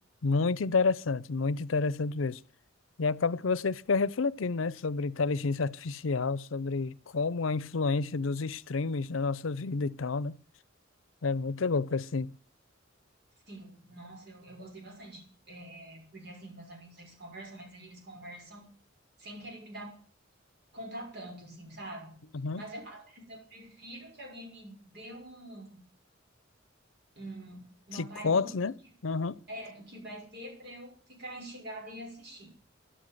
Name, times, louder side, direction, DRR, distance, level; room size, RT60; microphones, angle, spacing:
voice 1, 0.2-2.4 3.0-10.4 11.2-12.3 22.4-22.6 27.9-28.7 29.0-29.4, left 4 dB, 85° left, 0.6 m, -29 dB
voice 2, 13.5-18.7 19.2-20.0 20.7-22.2 22.5-25.8 27.2-28.5 29.5-32.5, right 1 dB, 60° right, 5.9 m, -45 dB
13.0 x 11.5 x 7.9 m
head